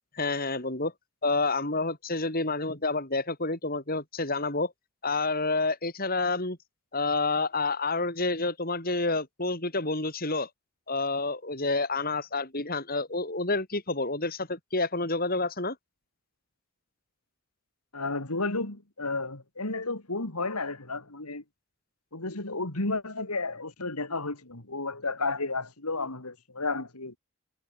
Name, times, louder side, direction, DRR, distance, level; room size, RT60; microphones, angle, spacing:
voice 1, 0.1-0.9 1.2-4.7 5.0-6.6 6.9-10.5 10.9-15.7, left 3 dB, 40° left, 6.2 m, -29 dB
voice 2, 17.9-21.4 22.1-27.2, left 3 dB, 90° left, 3.9 m, -32 dB
head